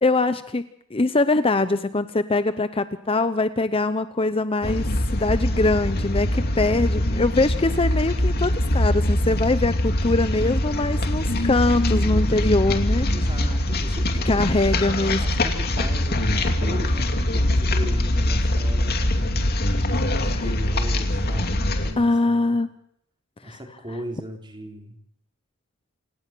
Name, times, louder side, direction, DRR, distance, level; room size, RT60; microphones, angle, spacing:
voice 1, 0.0-4.9 5.1-13.1 14.2-15.2 22.0-22.7 23.5-23.6, left 2 dB, 25° left, 12 dB, 0.8 m, -22 dB
sound 1, 4.6-21.9, left 1 dB, 50° left, 2.5 m, -23 dB
voice 2, 13.1-14.5 15.0-19.5 20.1-22.6 23.4-25.0, equal, 20° right, 3 dB, 4.0 m, -37 dB
28.0 x 17.5 x 6.2 m, 0.70 s
head